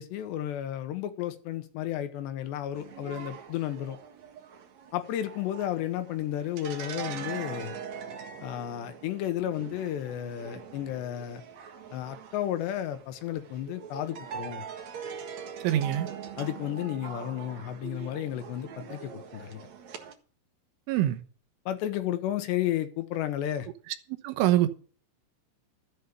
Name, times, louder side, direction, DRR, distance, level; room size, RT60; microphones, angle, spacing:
voice 1, 0.0-4.0 4.9-7.8 8.4-11.4 11.9-14.6 16.4-19.6 21.7-23.7, left 12 dB, 75° left, 2.9 m, -32 dB
sound 1, 2.7-20.1, right 7 dB, 60° right, 1.9 m, -42 dB
voice 2, 15.6-16.1 20.9-21.2 23.9-24.0 24.2-24.7, right 13 dB, 85° right, 3.6 m, -24 dB
13.5 x 8.4 x 6.7 m
omnidirectional pair, 5.5 m